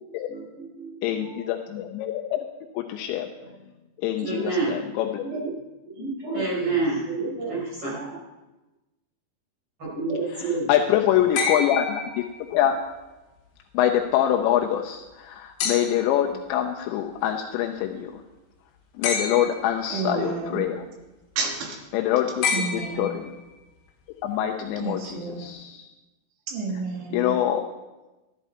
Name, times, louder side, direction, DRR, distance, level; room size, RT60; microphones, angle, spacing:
voice 1, 0.3-1.5 3.4-3.5 4.2-4.7 5.2-5.5 5.8-8.3 9.8-10.7, right 3 dB, 30° right, -6 dB, 4.8 m, -29 dB
voice 2, 1.0-2.5 2.7-3.3 4.0-5.2 10.7-12.2 12.5-12.8 13.7-18.2 19.0-20.9 21.9-22.5 22.7-23.3 24.2-25.9 27.1-27.6, left 11 dB, 85° left, 2 dB, 2.7 m, -25 dB
sound 1, 11.4-12.7 15.6-16.2 19.0-19.8 22.4-23.5 25.0-25.1, left 5 dB, 65° left, 3.0 m, -29 dB
voice 3, 19.9-20.7 21.4-21.8 22.5-23.2 24.8-25.5 26.5-27.4, right 4 dB, 75° right, 1 dB, 3.8 m, -31 dB
12.0 x 11.0 x 4.3 m, 1.1 s
omnidirectional pair, 5.4 m